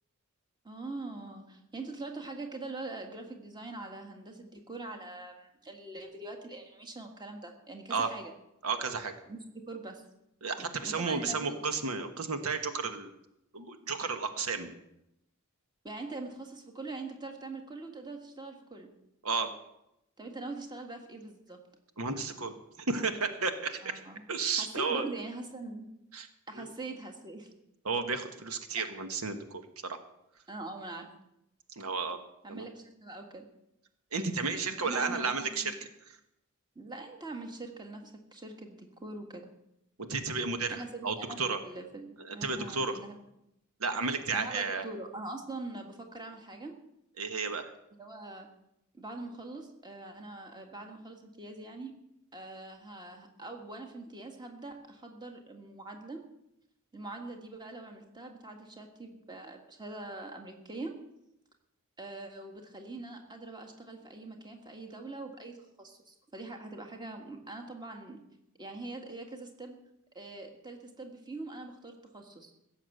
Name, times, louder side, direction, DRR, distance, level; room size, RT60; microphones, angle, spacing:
voice 1, 0.6-8.3 9.3-10.0 10.6-11.5 15.8-18.9 20.2-21.6 23.8-24.2 24.6-25.9 26.5-27.5 28.8-28.9 30.5-31.1 32.4-33.5 34.8-35.7 36.8-39.5 40.7-43.2 44.3-46.8 48.0-48.5 48.9-51.9 52.3-56.2 56.9-60.9 62.0-68.2 68.6-69.8 70.2-72.5, right 2 dB, 20° right, 3 dB, 1.8 m, -43 dB
voice 2, 8.6-9.1 10.4-13.1 13.5-14.7 19.2-19.5 22.0-22.5 22.9-23.9 24.3-25.1 26.1-26.3 26.5-26.7 27.8-30.0 31.8-32.2 32.5-32.7 34.1-35.7 40.0-41.6 42.2-42.9 43.8-44.8 47.2-47.7, right 4 dB, 90° right, 7 dB, 1.4 m, -32 dB
16.0 x 7.2 x 7.9 m, 0.84 s
head